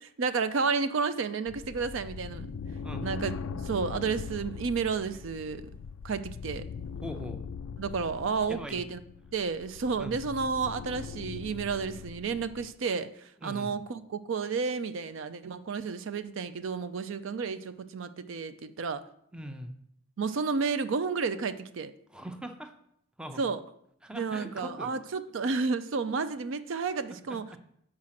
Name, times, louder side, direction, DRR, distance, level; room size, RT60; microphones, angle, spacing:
voice 1, 0.0-2.5 3.0-3.3 3.6-5.7 6.0-6.7 7.8-9.0 9.3-19.0 20.2-21.9 23.4-23.6 24.1-27.6, right 5 dB, 60° right, 12 dB, 0.4 m, -31 dB
sound 1, 1.5-12.7, left 6 dB, 70° left, 0.3 m, -41 dB
voice 2, 2.8-3.2 7.0-7.4 8.5-8.8 10.0-10.2 13.4-13.8 19.3-19.7 22.1-22.7 23.2-23.4 24.0-24.9, equal, 5° right, 6 dB, 0.5 m, -40 dB
7.5 x 4.8 x 5.8 m, 0.71 s
head